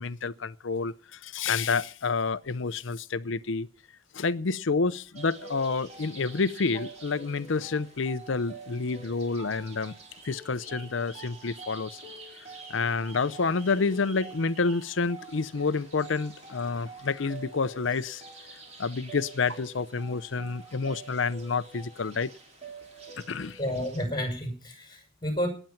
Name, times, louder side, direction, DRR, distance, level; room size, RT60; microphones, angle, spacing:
voice 1, 0.0-3.7 4.1-9.9 10.2-12.0 12.7-18.2 18.8-22.3 23.3-23.6, left 4 dB, 70° left, 0.6 m, -29 dB
sound 1, 5.1-24.0, right 3 dB, 35° right, 3.2 m, -47 dB
voice 2, 23.6-25.5, equal, 25° left, 6.0 m, -31 dB
18.5 x 9.1 x 5.8 m
head